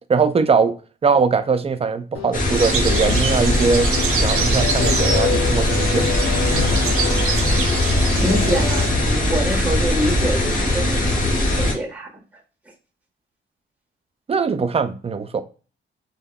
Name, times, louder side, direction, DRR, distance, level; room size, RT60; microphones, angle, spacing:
voice 1, 0.1-0.7 1.0-3.9 4.2-6.0 14.3-15.4, right 5 dB, 30° right, 0.4 m, -20 dB
sound 1, 2.1-9.1, left 6 dB, 75° left, 0.5 m, -27 dB
sound 2, 2.3-11.7, left 1 dB, 40° left, 1.0 m, -20 dB
sound 3, 2.5-8.9, right 6 dB, 90° right, 0.5 m, -27 dB
voice 2, 8.2-12.1, right 1 dB, 5° right, 1.4 m, -25 dB
3.3 x 2.1 x 2.3 m
cardioid pair, 80°, 21 cm